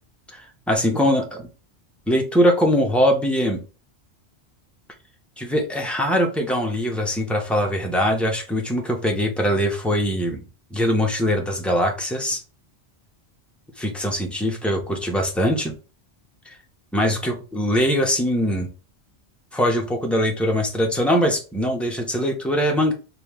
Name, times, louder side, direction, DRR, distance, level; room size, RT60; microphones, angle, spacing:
voice 1, 0.3-1.5 2.1-3.6 5.4-10.4 10.7-12.4 13.8-15.7 16.5-16.6 16.9-18.7 19.5-22.9, equal, ahead, 1 dB, 0.6 m, -22 dB
2.9 x 2.7 x 3.5 m, 0.33 s
omnidirectional pair, 1.1 m